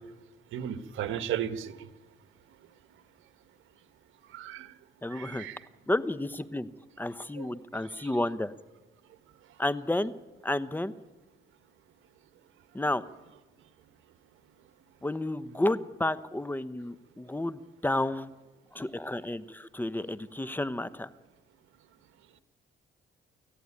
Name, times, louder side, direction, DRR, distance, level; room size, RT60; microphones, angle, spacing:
voice 1, 0.5-1.9 4.3-4.7 5.1-5.6 7.4-7.5 8.0-8.1, right 10 dB, 80° right, 11 dB, 1.5 m, -35 dB
voice 2, 5.0-5.5 5.9-6.7 7.0-8.5 9.6-10.1 10.4-10.9 12.7-13.0 15.0-18.3 18.7-21.1, left 1 dB, 10° left, 14 dB, 1.0 m, -31 dB
29.5 x 14.5 x 9.8 m, 1.3 s
cardioid pair, 90°, 20 cm